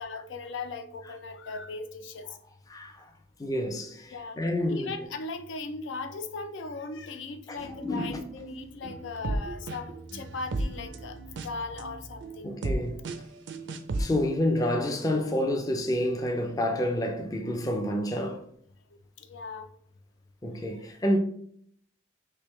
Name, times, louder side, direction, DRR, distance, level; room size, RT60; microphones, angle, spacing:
voice 1, 0.0-2.4 4.1-12.5 17.4-17.6 18.9-19.7, left 3 dB, 85° left, 0.5 m, -38 dB
voice 2, 2.7-3.1 3.4-4.9 7.5-8.3 12.4-13.0 14.0-18.4 20.4-21.2, left 1 dB, 20° left, 0.4 m, -29 dB
sound 1, 7.6-14.1, right 2 dB, 75° right, 0.4 m, -35 dB
3.4 x 2.8 x 3.1 m
head